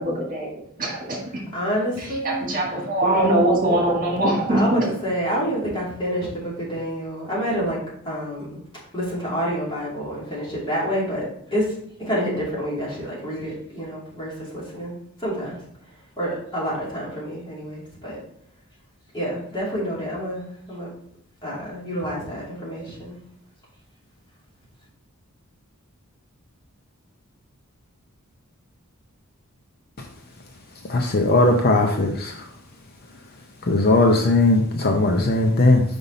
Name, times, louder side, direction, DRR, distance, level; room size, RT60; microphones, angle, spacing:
voice 1, 0.0-1.4 2.0-4.8, right 1 dB, 40° right, -2 dB, 1.8 m, -22 dB
voice 2, 1.5-2.5 4.5-7.8 8.0-8.6 8.9-14.9 15.2-18.2 19.1-20.9 21.4-23.2, equal, 20° left, -7 dB, 2.8 m, -28 dB
voice 3, 30.9-32.3 33.7-35.8, left 2 dB, 45° left, 3 dB, 0.6 m, -18 dB
5.7 x 5.2 x 4.0 m, 0.67 s
head